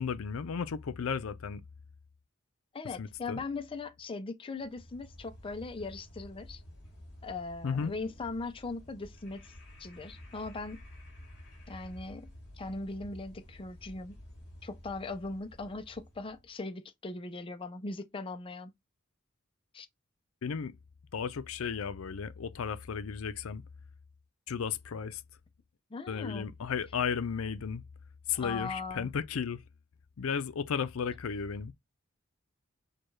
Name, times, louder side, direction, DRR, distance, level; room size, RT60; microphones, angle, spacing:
voice 1, 0.0-1.6 3.0-3.4 7.6-7.9 20.4-20.7 21.1-23.6 24.5-25.2 26.1-27.8 28.3-29.6 30.2-31.7, left 6 dB, 80° left, 0.5 m, -34 dB
voice 2, 2.7-6.6 7.2-9.5 9.8-10.8 11.7-12.3 12.6-14.1 14.6-18.7 19.7-19.9 25.9-26.5 28.3-29.1, left 3 dB, 25° left, 0.5 m, -39 dB
sound 1, 4.6-16.5, left 1 dB, 55° left, 2.5 m, -51 dB
6.5 x 2.3 x 3.1 m
head